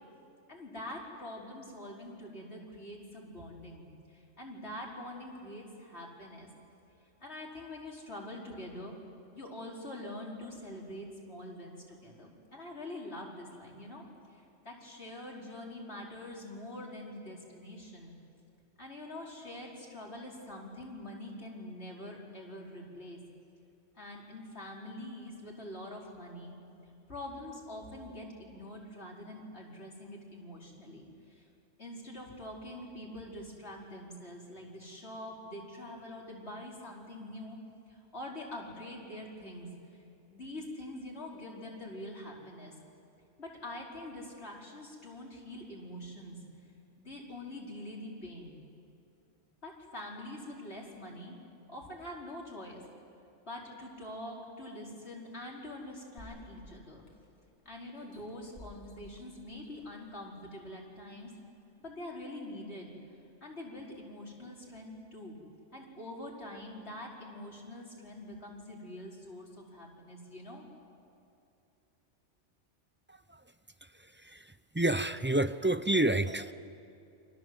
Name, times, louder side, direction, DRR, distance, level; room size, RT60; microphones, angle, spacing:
voice 1, 0.5-6.5 7.2-9.0 9.3-14.0 14.3-18.1 18.8-23.2 23.9-26.6 27.1-31.4 31.8-37.6 37.9-39.7 40.3-42.7 43.4-46.4 47.0-48.6 49.6-51.4 51.7-52.8 53.4-57.0 57.6-61.3 61.8-62.9 63.4-65.4 65.7-70.7, left 1 dB, 60° left, -2 dB, 5.0 m, -45 dB
sound 1, 56.2-57.5 58.0-60.1 60.7-60.8, left 2 dB, 35° left, 3.8 m, -54 dB
voice 2, 73.1-73.4 74.2-76.5, right 1 dB, 15° right, 12 dB, 0.4 m, -29 dB
29.5 x 26.0 x 7.8 m, 2.7 s
omnidirectional pair, 1.2 m